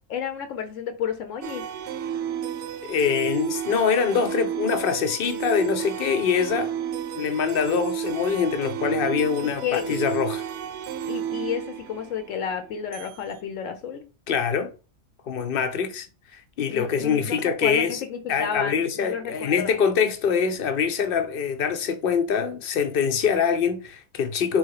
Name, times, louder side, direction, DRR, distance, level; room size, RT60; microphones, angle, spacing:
voice 1, 0.1-1.7 9.4-10.0 11.1-14.0 16.7-19.8, left 7 dB, 80° left, 1.0 m, -31 dB
sound 1, 1.4-13.2, right 9 dB, 75° right, 0.9 m, -32 dB
voice 2, 2.8-6.7 7.2-10.4 14.3-14.7 15.3-16.1 16.3-18.0 18.3-24.6, left 6 dB, 55° left, 0.7 m, -24 dB
3.4 x 2.8 x 4.7 m
omnidirectional pair, 1.3 m